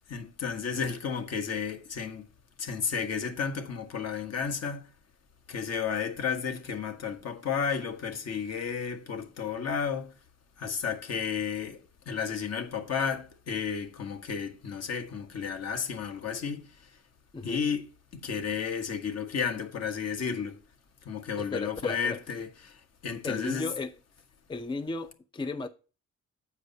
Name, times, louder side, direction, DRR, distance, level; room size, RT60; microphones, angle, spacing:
voice 1, 0.1-2.3 2.6-4.9 5.5-10.2 10.6-17.0 17.4-20.6 21.0-23.7, left 6 dB, 55° left, 1.5 m, -33 dB
voice 2, 21.4-22.2 23.2-23.9 24.5-25.7, left 3 dB, 15° left, 0.5 m, -34 dB
8.2 x 4.9 x 5.3 m
cardioid pair, 90°, 30 cm